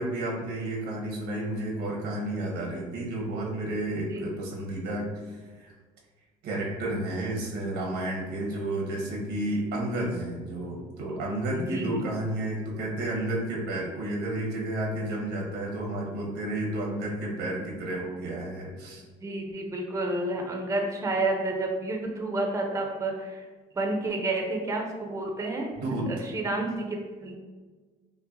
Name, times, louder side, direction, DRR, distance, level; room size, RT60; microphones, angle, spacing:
voice 1, 0.0-5.7 6.4-19.0 25.8-26.1, right 1 dB, 90° right, -2 dB, 1.0 m, -31 dB
voice 2, 11.5-12.0 19.2-23.4 23.7-25.7 26.1-27.4, right 2 dB, 20° right, 2 dB, 0.5 m, -30 dB
5.5 x 2.2 x 2.6 m, 1.4 s
cardioid pair, 110°, 17 cm